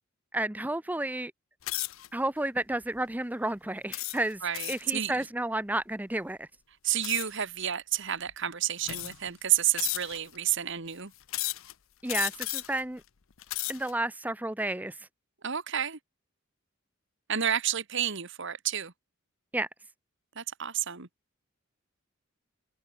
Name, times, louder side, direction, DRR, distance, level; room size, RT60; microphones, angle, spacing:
voice 1, 0.3-1.3 2.1-4.4 4.7-6.5 12.0-13.0 13.7-14.9 19.5-19.7, right 1 dB, 10° right, 0.7 m, -31 dB
sound 1, 1.6-2.1 2.7-3.0 3.9-4.9 7.0-7.4 8.3-8.4 8.8-9.3 9.8-10.4 11.3-11.7 12.1-12.8 13.3-13.9, left 18 dB, 70° left, 0.7 m, -34 dB
voice 2, 4.4-5.3 6.8-11.1 15.4-16.0 17.3-18.9 20.4-21.1, right 10 dB, 60° right, 1.9 m, -30 dB
head